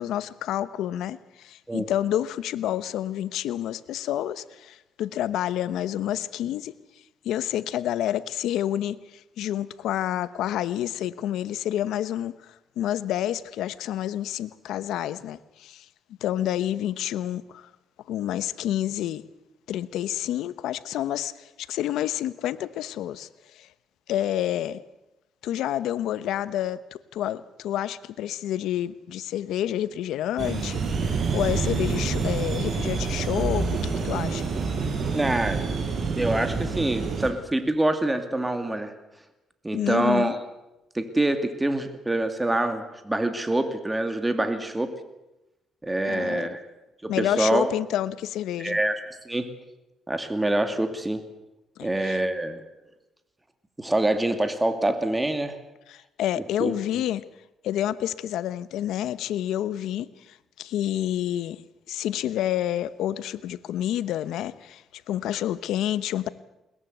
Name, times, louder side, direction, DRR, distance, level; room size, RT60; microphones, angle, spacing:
voice 1, 0.0-6.7 7.2-15.9 16.2-17.7 18.1-19.2 19.7-23.7 24.1-24.8 25.4-34.4 39.7-40.3 46.1-46.5 47.1-48.8 51.8-52.2 55.9-57.2 57.6-61.6 61.9-66.3, left 12 dB, 85° left, 1.0 m, -29 dB
sound 1, 30.4-37.3, right 5 dB, 55° right, 5.5 m, -27 dB
voice 2, 35.1-35.7 36.2-38.9 39.6-40.4 40.9-44.9 45.8-46.6 47.0-47.7 48.6-49.0 49.3-49.5 50.1-51.2 51.8-52.6 53.8-55.6 56.6-56.8, right 1 dB, 15° right, 2.5 m, -25 dB
21.5 x 21.0 x 8.1 m
cardioid pair, 90°, 0 cm